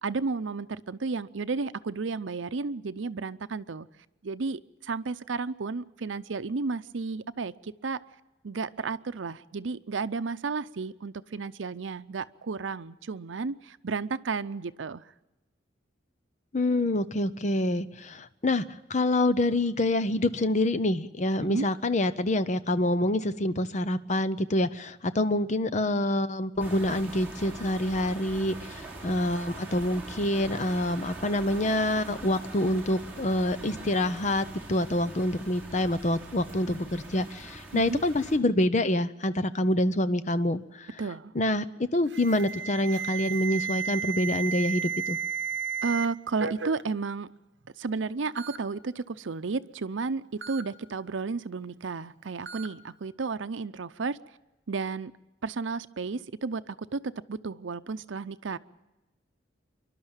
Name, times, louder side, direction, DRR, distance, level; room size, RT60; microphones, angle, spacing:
voice 1, 0.0-3.9 4.2-8.0 8.4-15.0 21.4-21.7 37.7-38.0 41.0-41.3 45.8-47.3 47.8-54.2 54.7-55.1 55.4-58.6, right 4 dB, 85° right, 13 dB, 0.6 m, -32 dB
voice 2, 16.5-18.6 18.9-40.9 41.3-41.6 41.9-45.2, left 1 dB, 40° left, 13 dB, 0.7 m, -26 dB
sound 1, 26.6-38.4, right 2 dB, 10° right, 3.8 m, -42 dB
Alarm, 42.1-46.1 46.4-46.8 47.7-47.8 48.4-48.6 50.4-50.6 52.5-52.7, right 7 dB, 65° right, 1.0 m, -33 dB
27.0 x 12.0 x 8.9 m, 1.0 s
head